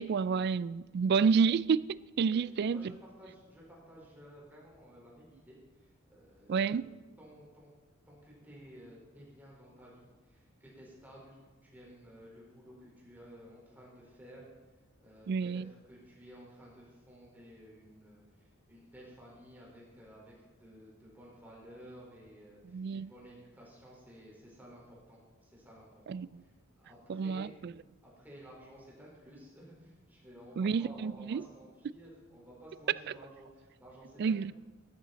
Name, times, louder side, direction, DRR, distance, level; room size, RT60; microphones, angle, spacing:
voice 1, 0.0-1.8 2.2-2.9 6.5-6.9 15.3-15.7 22.7-23.1 26.1-26.4 27.1-27.7 30.6-31.4 34.2-34.5, right 5 dB, 50° right, 0.3 m, -29 dB
voice 2, 2.7-7.7 8.1-14.4 15.0-27.7 28.0-34.5, equal, 10° right, 4.5 m, -54 dB
13.5 x 13.5 x 4.1 m
head